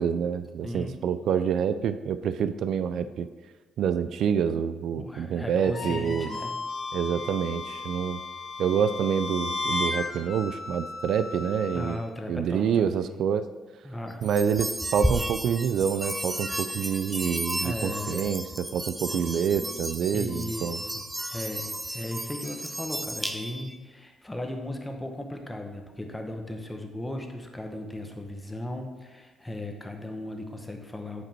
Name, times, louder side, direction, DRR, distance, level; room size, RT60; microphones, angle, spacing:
voice 1, 0.0-3.3 3.8-6.3 6.9-8.2 8.6-12.0 12.3-13.5 14.2-20.8, right 7 dB, 70° right, 12 dB, 0.3 m, -27 dB
voice 2, 0.6-1.0 4.9-6.6 11.7-13.2 13.8-14.2 17.6-18.3 20.1-21.0 21.3-31.2, left 1 dB, 10° left, 3 dB, 1.1 m, -36 dB
sound 1, 5.6-11.9, left 3 dB, 50° left, 1.9 m, -34 dB
sound 2, 14.2-23.7, right 1 dB, 5° right, 0.6 m, -33 dB
8.9 x 5.2 x 4.4 m, 1.3 s
cardioid pair, 90°, 0 cm